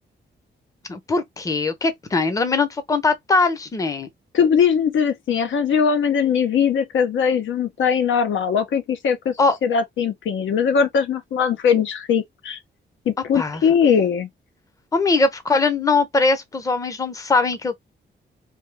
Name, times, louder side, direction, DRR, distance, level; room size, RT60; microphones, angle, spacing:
voice 1, 0.9-4.1 9.4-9.6 13.3-13.6 14.9-17.9, left 3 dB, 15° left, 0.6 m, -21 dB
voice 2, 4.3-9.3 9.6-12.6 13.1-14.3, left 7 dB, 90° left, 0.9 m, -20 dB
3.4 x 2.7 x 3.2 m
wide cardioid pair, 160°, 19 cm